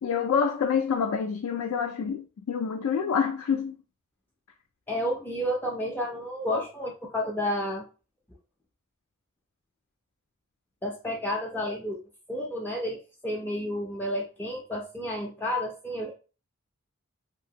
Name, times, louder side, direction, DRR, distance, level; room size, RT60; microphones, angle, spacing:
voice 1, 0.0-3.8, left 6 dB, 80° left, 0.3 m, -27 dB
voice 2, 4.9-7.9 10.8-12.0 12.3-16.1, equal, 10° left, 0.3 m, -31 dB
2.8 x 2.5 x 2.7 m
head